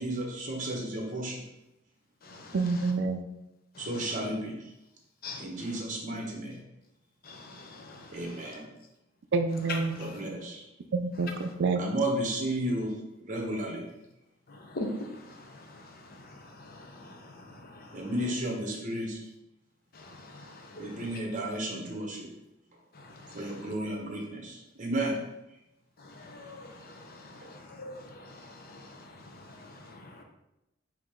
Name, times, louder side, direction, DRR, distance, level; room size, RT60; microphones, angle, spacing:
voice 1, 0.0-1.4 3.8-4.6 5.4-6.6 8.1-8.7 10.0-10.6 11.8-12.9 13.3-13.8 17.9-19.2 20.8-22.3 23.3-25.2, right 1 dB, 40° right, 0 dB, 1.1 m, -33 dB
voice 2, 2.5-3.2 9.3-10.0 10.9-11.8, right 4 dB, 65° right, 8 dB, 0.4 m, -28 dB
voice 3, 7.3-8.0 9.7-9.8 14.7-14.9 16.7-17.2 20.0-20.9 23.3-23.5 26.2-28.9 29.9-30.0, left 2 dB, 50° left, 3 dB, 0.7 m, -42 dB
5.0 x 2.8 x 3.7 m, 0.90 s
head